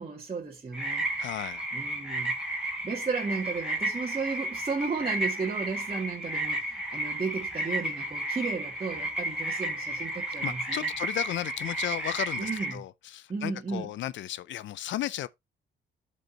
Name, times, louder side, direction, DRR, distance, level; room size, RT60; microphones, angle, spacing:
voice 1, 0.0-1.1 1.7-2.3 2.8-10.9 12.4-12.8 13.3-13.9, right 4 dB, 30° right, 2.0 m, -34 dB
sound 1, 0.7-12.8, right 1 dB, 5° right, 2.9 m, -33 dB
voice 2, 1.2-1.7 10.4-15.3, left 13 dB, 70° left, 0.5 m, -34 dB
12.0 x 5.2 x 2.9 m
cardioid pair, 90°, 20 cm